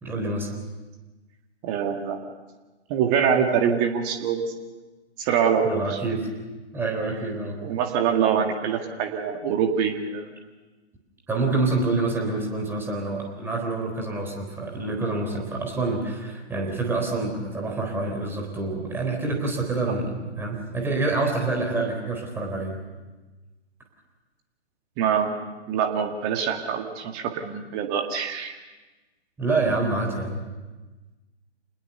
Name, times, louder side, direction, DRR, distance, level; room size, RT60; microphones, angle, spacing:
voice 1, 0.0-0.5 5.6-6.3 6.7-7.6 11.3-22.8 29.4-30.4, right 3 dB, 5° right, 0 dB, 3.9 m, -27 dB
voice 2, 1.6-2.2 2.9-4.4 5.2-6.0 7.6-10.3 25.0-25.3 25.7-28.5, right 7 dB, 25° right, 4 dB, 1.9 m, -24 dB
27.5 x 20.5 x 6.9 m, 1.2 s
figure-of-eight pair, 130°, 34 cm